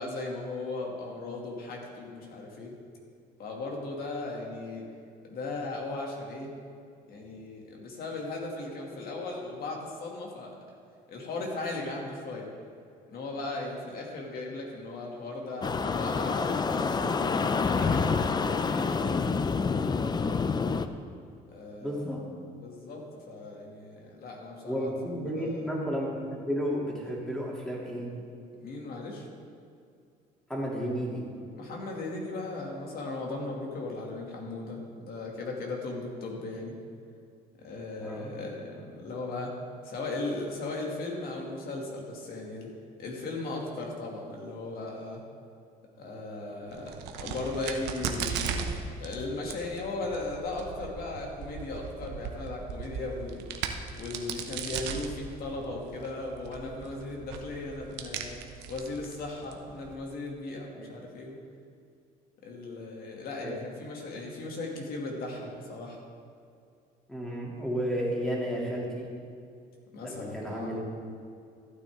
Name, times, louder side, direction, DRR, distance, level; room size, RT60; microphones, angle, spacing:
voice 1, 0.0-2.8 3.4-4.9 5.3-6.5 7.1-10.5 11.1-12.5 13.1-15.7 16.0-19.3 21.5-22.0 22.6-25.7 28.6-29.3 31.5-36.7 37.6-39.5 39.8-42.7 43.0-45.2 46.0-48.5 49.0-53.5 53.9-58.4 58.7-61.4 62.4-66.0 69.9-70.7, left 2 dB, 65° left, -1 dB, 2.4 m, -37 dB
sound 1, 15.6-20.9, left 4 dB, 25° left, 0.5 m, -27 dB
voice 2, 21.8-22.2 24.7-28.1 30.5-31.2 38.0-38.3 60.7-60.9 63.4-63.5 67.1-69.1 70.0-71.0, equal, 5° left, -4 dB, 2.7 m, -32 dB
Crack, 46.7-59.9, right 6 dB, 90° right, 0.9 m, -38 dB
14.5 x 9.2 x 3.6 m, 2.4 s
cardioid pair, 110°, 17 cm